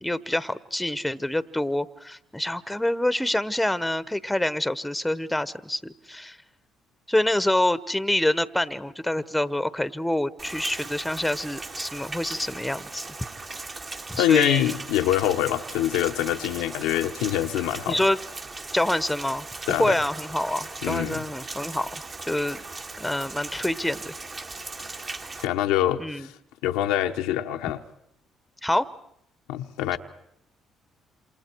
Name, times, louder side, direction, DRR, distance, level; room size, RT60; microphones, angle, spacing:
voice 1, 0.0-6.4 7.1-13.0 14.1-14.7 17.9-18.2 18.7-22.6 23.0-24.1 26.0-26.3 28.6-28.9 29.9-30.0, left 1 dB, 5° left, 1.0 m, -26 dB
Rain, 10.4-25.4, right 3 dB, 40° right, 2.1 m, -38 dB
voice 2, 14.2-18.0 19.7-20.0 20.8-21.2 25.4-26.3 26.6-27.8 29.5-30.0, left 12 dB, 90° left, 0.9 m, -25 dB
28.0 x 28.0 x 4.6 m
supercardioid pair, 70°, 0 cm